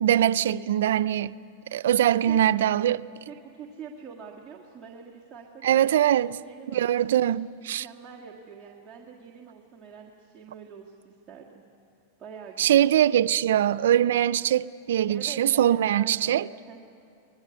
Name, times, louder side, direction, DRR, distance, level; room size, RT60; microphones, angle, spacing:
voice 1, 0.0-1.3 1.7-3.0 5.6-6.4 6.7-7.9 12.6-16.5, right 11 dB, 85° right, 0.5 m, -22 dB
voice 2, 2.0-2.4 3.3-5.9 6.4-10.9 11.3-11.6 12.2-12.9 15.1-16.8, right 6 dB, 15° right, 1.9 m, -45 dB
24.0 x 20.0 x 9.5 m
supercardioid pair, 155°, 0 cm